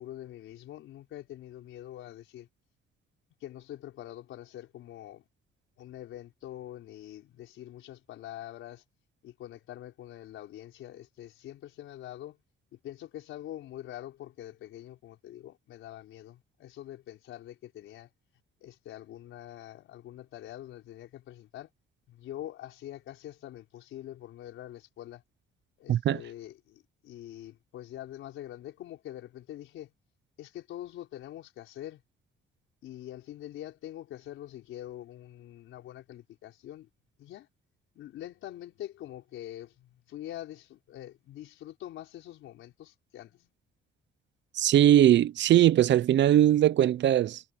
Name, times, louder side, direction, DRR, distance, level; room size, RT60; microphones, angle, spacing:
voice 1, 0.0-2.5 3.4-5.3 5.8-8.8 9.2-12.4 12.7-18.1 18.6-21.7 22.1-25.2 25.8-29.9 30.4-32.0 32.8-36.9 37.2-37.5 37.9-43.5, left 13 dB, 85° left, 4.6 m, -44 dB
voice 2, 44.5-47.4, right 11 dB, 65° right, 0.7 m, -21 dB
cardioid pair, 90°, 20 cm